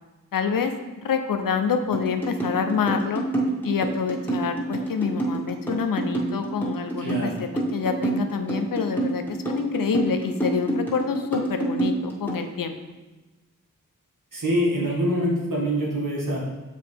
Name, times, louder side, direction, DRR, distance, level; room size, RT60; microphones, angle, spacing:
voice 1, 0.3-0.7 1.0-3.2 3.6-12.8, left 6 dB, 85° left, 6 dB, 0.7 m, -27 dB
sound 1, 1.9-12.4, right 2 dB, 5° left, 1.7 m, -27 dB
voice 2, 7.0-7.4 14.3-16.4, equal, 70° right, -4 dB, 2.0 m, -25 dB
6.6 x 5.0 x 3.5 m, 1.2 s
cardioid pair, 45°, 33 cm